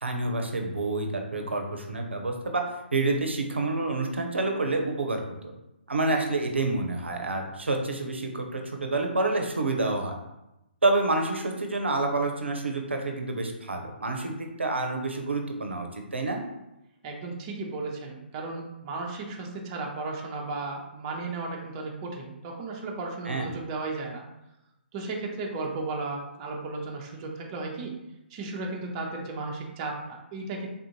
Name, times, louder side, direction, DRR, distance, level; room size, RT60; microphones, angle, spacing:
voice 1, 0.0-2.6 2.9-5.5 5.9-10.1 10.8-16.4 23.3-23.5, right 2 dB, 85° right, 3 dB, 0.6 m, -28 dB
voice 2, 17.0-24.2 24.9-27.9 28.3-30.7, right 3 dB, 30° right, 0 dB, 0.6 m, -35 dB
3.6 x 2.5 x 2.8 m, 0.91 s
figure-of-eight pair, 135°, 6 cm